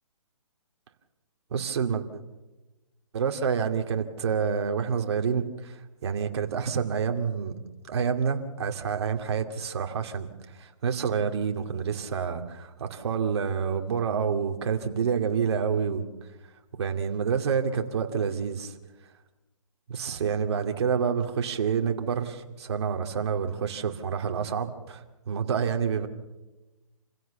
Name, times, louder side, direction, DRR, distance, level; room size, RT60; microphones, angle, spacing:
voice 1, 1.5-2.2 3.1-7.5 7.9-16.1 16.7-18.7 19.9-26.1, right 6 dB, 50° right, 5 dB, 2.5 m, -28 dB
28.5 x 16.0 x 7.1 m, 1.1 s
hypercardioid pair, 155°, 18 cm